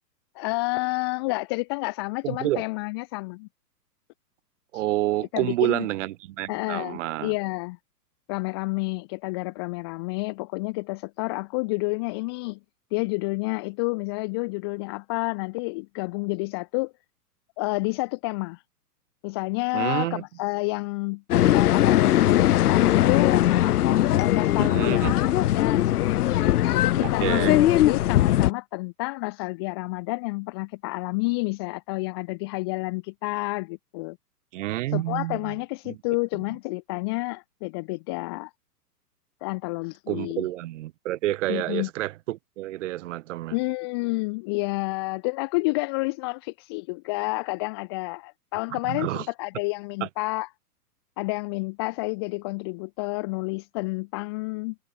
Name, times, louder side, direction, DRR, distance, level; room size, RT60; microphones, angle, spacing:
voice 1, 0.3-3.5 5.3-5.9 6.5-7.8 8.3-12.6 12.9-16.9 17.6-18.6 19.2-21.2 21.5-23.3 24.2-26.3 26.7-34.2 34.9-38.5 39.4-40.5 41.5-41.9 43.5-50.5 51.2-54.8, left 27 dB, 20° left, 0.4 m, -29 dB
voice 2, 2.2-2.6 4.7-7.3 19.7-20.2 24.6-25.1 27.0-27.6 34.5-35.6 35.9-36.0 40.1-43.6 48.9-49.3 50.0-50.1, right 15 dB, 50° right, 1.5 m, -28 dB
sound 1, 21.3-28.5, left 13 dB, 70° left, 0.6 m, -20 dB
hypercardioid pair, 120°, 47 cm